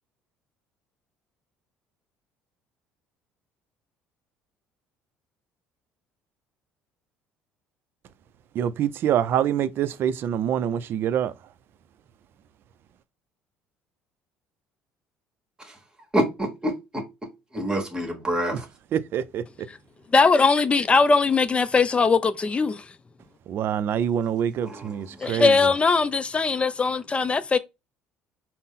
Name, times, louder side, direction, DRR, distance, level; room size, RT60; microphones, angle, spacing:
voice 1, 8.5-11.3 18.5-18.6 18.9-19.4 23.5-25.7, right 9 dB, 55° right, 0.4 m, -25 dB
voice 2, 16.1-17.0 17.5-18.6 24.6-25.0, right 1 dB, 20° right, 1.2 m, -27 dB
voice 3, 20.1-22.8 25.2-27.6, left 4 dB, 25° left, 0.4 m, -20 dB
4.0 x 2.0 x 3.7 m
supercardioid pair, 75°, 4 cm